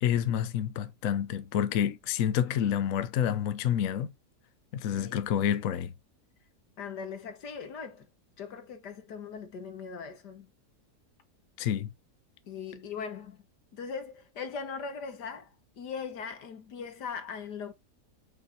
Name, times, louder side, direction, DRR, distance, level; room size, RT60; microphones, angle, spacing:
voice 1, 0.0-4.1 4.7-5.9 11.6-11.9, left 9 dB, 60° left, 1.0 m, -28 dB
voice 2, 6.8-8.1 8.4-10.5 12.5-13.4 13.7-17.7, left 6 dB, 85° left, 2.0 m, -40 dB
7.3 x 5.7 x 2.7 m
omnidirectional pair, 1.7 m